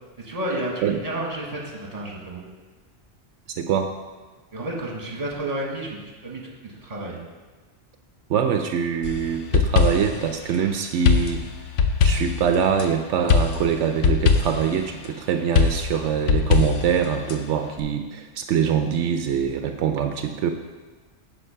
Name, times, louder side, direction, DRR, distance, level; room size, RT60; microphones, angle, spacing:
voice 1, 0.2-2.4 4.5-7.2, right 1 dB, 35° right, -1 dB, 1.5 m, -31 dB
voice 2, 3.6-3.9 8.3-11.4 12.0-20.5, right 7 dB, 85° right, 6 dB, 0.9 m, -24 dB
sound 1, 9.0-10.2 11.1-12.9 13.3-14.7 15.6-17.4, left 5 dB, 85° left, 1.0 m, -21 dB
9.7 x 4.8 x 5.6 m, 1.3 s
omnidirectional pair, 1.2 m